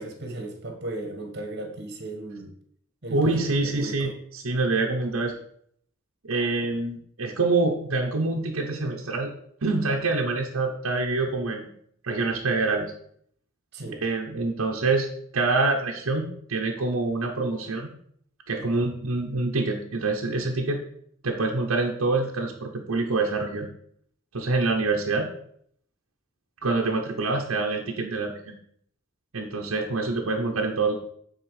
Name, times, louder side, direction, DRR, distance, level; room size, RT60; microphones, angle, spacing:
voice 1, 0.0-2.5 3.0-4.1 13.7-14.0 18.6-18.7, right 2 dB, 55° right, 4 dB, 1.7 m, -36 dB
voice 2, 3.1-5.4 6.2-9.3 9.6-11.7 12.0-12.9 13.9-15.1 15.3-17.9 18.5-20.8 21.2-23.7 24.3-25.3 26.6-28.5 29.3-30.9, right 3 dB, 90° right, 0 dB, 1.0 m, -26 dB
8.9 x 4.3 x 4.9 m, 0.65 s
head